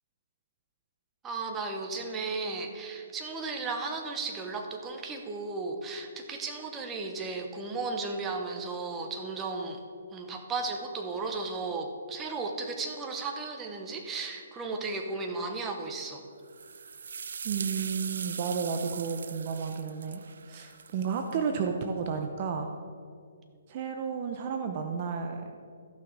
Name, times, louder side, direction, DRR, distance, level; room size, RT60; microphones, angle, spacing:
voice 1, 1.2-9.8 10.1-16.2, right 3 dB, 15° right, 4 dB, 1.0 m, -35 dB
sound 1, 16.5-21.3, right 6 dB, 70° right, 0.3 m, -40 dB
voice 2, 17.4-20.2 20.5-22.7 23.7-25.5, right 6 dB, 40° right, 4 dB, 0.7 m, -32 dB
13.5 x 6.1 x 4.8 m, 2.3 s
hypercardioid pair, 145°, 0 cm